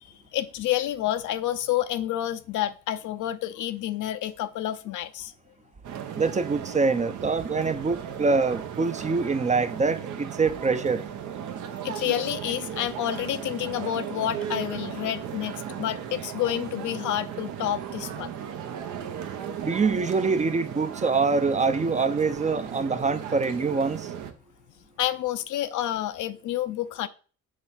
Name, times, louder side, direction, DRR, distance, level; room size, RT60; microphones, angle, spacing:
voice 1, 0.0-5.3 11.8-18.3 25.0-27.1, left 12 dB, 80° left, 0.7 m, -29 dB
sound 1, 5.8-24.3, right 8 dB, 75° right, 1.0 m, -36 dB
voice 2, 6.2-11.0 19.6-24.1, right 4 dB, 25° right, 0.5 m, -25 dB
6.6 x 3.4 x 5.7 m
cardioid pair, 90°, 30 cm